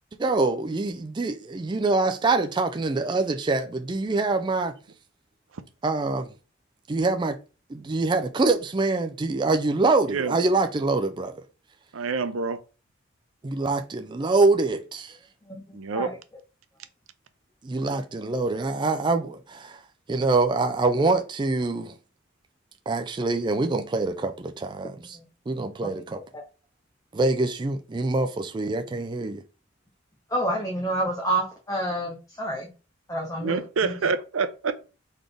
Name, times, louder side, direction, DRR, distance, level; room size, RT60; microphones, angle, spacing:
voice 1, 0.2-4.7 5.8-6.3 6.9-7.4 7.7-11.3 13.4-15.2 17.6-19.8 20.1-21.9 22.9-25.2 25.5-26.2 27.1-29.4, right 3 dB, 20° right, 0.3 m, -25 dB
voice 2, 10.0-10.4 11.9-12.6 15.7-16.1 33.4-34.7, right 4 dB, 80° right, 0.6 m, -27 dB
voice 3, 15.5-16.1 25.1-25.2 25.8-26.0 26.3-26.4 30.3-32.7 33.1-33.6 33.8-33.9, right 1 dB, 15° left, 0.8 m, -29 dB
4.0 x 3.7 x 3.3 m
head